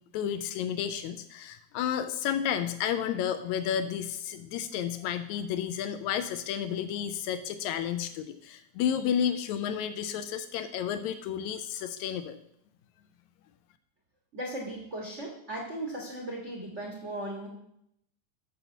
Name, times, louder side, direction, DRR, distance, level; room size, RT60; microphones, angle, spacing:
voice 1, 0.1-12.4, left 9 dB, 85° left, 10 dB, 1.6 m, -31 dB
voice 2, 14.3-17.5, right 1 dB, 55° right, -2 dB, 0.7 m, -37 dB
15.5 x 6.8 x 2.8 m, 0.75 s
omnidirectional pair, 3.9 m